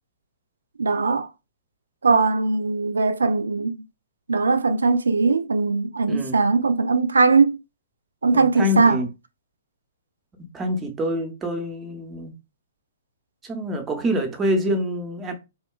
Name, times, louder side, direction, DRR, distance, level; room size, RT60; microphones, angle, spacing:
voice 1, 0.8-1.3 2.0-3.8 4.3-7.6 8.2-9.0, right 4 dB, 80° right, 0.3 m, -20 dB
voice 2, 6.1-6.4 8.3-9.1 10.4-12.3 13.4-15.3, equal, 15° right, 0.7 m, -26 dB
2.8 x 2.2 x 2.2 m
hypercardioid pair, 125°, 0 cm